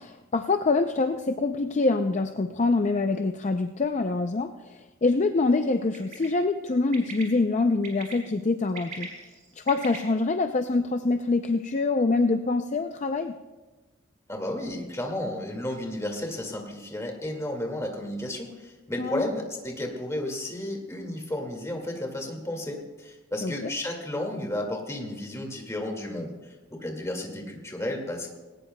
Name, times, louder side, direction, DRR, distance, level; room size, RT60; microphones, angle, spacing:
voice 1, 0.0-9.1 9.6-13.3 19.0-19.3 23.4-23.7, left 3 dB, 35° left, 7 dB, 0.4 m, -25 dB
Bird, 5.9-6.3 6.9-7.2 7.8-8.1 8.6-10.0, right 5 dB, 40° right, 3.7 m, -39 dB
voice 2, 14.3-26.3 26.8-28.3, left 1 dB, 15° left, 1 dB, 2.0 m, -33 dB
18.5 x 18.5 x 2.2 m, 1.2 s
head